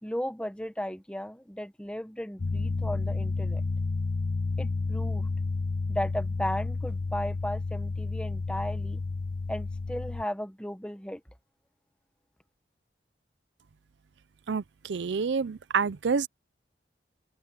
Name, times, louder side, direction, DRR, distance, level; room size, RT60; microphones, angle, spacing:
voice 1, 0.0-3.6 4.6-5.3 5.9-9.0 9.5-11.2, left 1 dB, 5° left, 1.2 m, -35 dB
sound 1, 2.4-10.2, left 3 dB, 50° left, 0.6 m, -31 dB
voice 2, 14.5-16.3, right 5 dB, 85° right, 0.5 m, -28 dB
open air
head